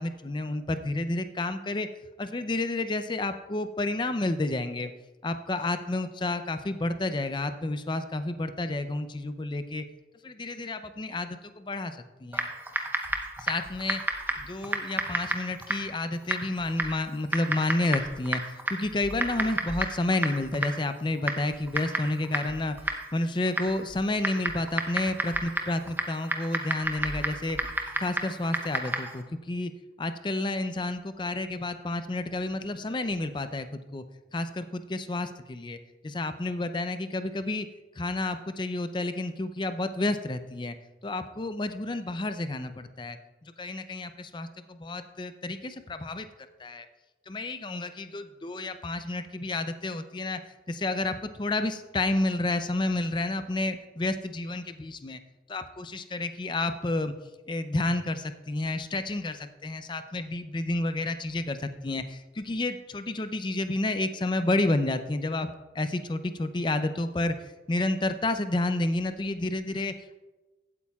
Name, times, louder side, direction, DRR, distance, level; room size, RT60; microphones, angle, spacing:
voice 1, 0.0-1.9 2.2-4.9 5.2-9.9 10.2-12.5 13.4-14.0 14.4-22.8 23.1-27.6 28.0-29.7 30.0-34.0 34.3-35.8 36.0-37.7 38.0-40.8 41.0-43.2 43.6-46.3 46.6-46.9 47.3-50.4 50.7-55.2 55.5-57.1 57.5-65.5 65.7-67.3 67.7-70.2, left 2 dB, 25° left, 10 dB, 0.5 m, -30 dB
Typing, 12.3-29.2, right 2 dB, 10° right, 0.7 m, -33 dB
15.5 x 8.5 x 2.4 m, 1.2 s
head